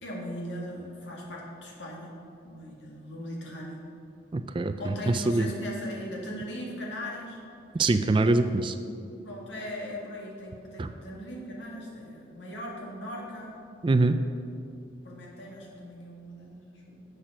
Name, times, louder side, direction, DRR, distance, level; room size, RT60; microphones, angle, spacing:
voice 1, 0.0-2.2 2.4-3.9 4.8-7.4 9.2-13.6 15.0-17.2, equal, 80° left, -3 dB, 2.1 m, -39 dB
voice 2, 4.3-5.5 7.7-8.8 10.8-10.9 13.8-14.2, right 2 dB, 25° right, 10 dB, 0.3 m, -24 dB
7.7 x 6.6 x 6.0 m, 2.6 s
head